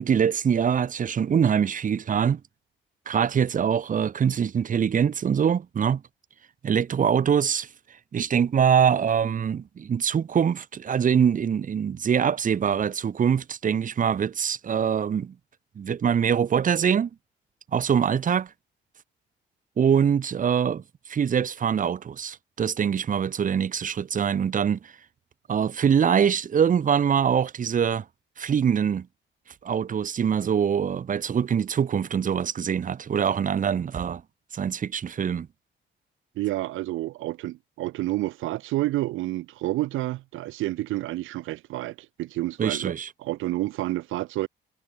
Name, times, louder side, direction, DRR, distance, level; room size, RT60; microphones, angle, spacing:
voice 1, 0.0-2.4 3.1-6.0 6.6-7.7 8.1-15.3 15.8-17.1 17.7-18.5 19.8-24.9 25.5-28.0 28.4-29.1 29.6-34.2 34.5-35.5 42.6-43.1, right 7 dB, 40° right, 1.0 m, -24 dB
voice 2, 36.4-42.9 43.2-44.5, right 17 dB, 85° right, 0.7 m, -29 dB
cardioid pair, 90°, 20 cm